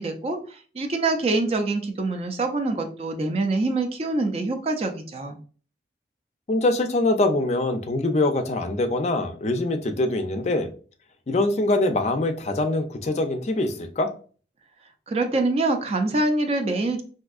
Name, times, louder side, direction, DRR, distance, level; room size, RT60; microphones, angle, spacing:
voice 1, 0.0-5.4 15.1-17.0, right 2 dB, 35° right, 0.4 m, -25 dB
voice 2, 6.5-10.7 11.3-14.1, left 2 dB, 40° left, 0.4 m, -23 dB
3.5 x 2.6 x 2.3 m
head